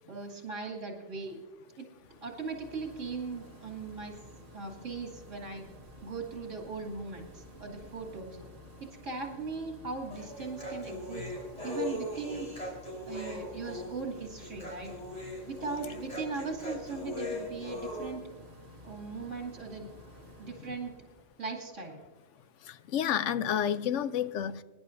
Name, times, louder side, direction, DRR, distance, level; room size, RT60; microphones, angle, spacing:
voice 1, 0.1-1.4 1.8-1.9 2.2-4.2 4.5-5.6 6.0-8.4 8.8-11.3 11.6-12.5 13.1-14.9 15.5-18.2 18.8-19.9 20.4-20.9 21.4-22.0, right 4 dB, 75° right, 0 dB, 2.9 m, -39 dB
sound 1, 1.9-21.3, left 1 dB, 60° right, 2.1 m, -52 dB
Human voice, 10.1-18.1, left 1 dB, 30° left, 4.2 m, -39 dB
voice 2, 22.7-24.6, left 9 dB, 75° left, 13 dB, 0.9 m, -30 dB
25.0 x 11.0 x 2.6 m, 1.3 s
omnidirectional pair, 1.3 m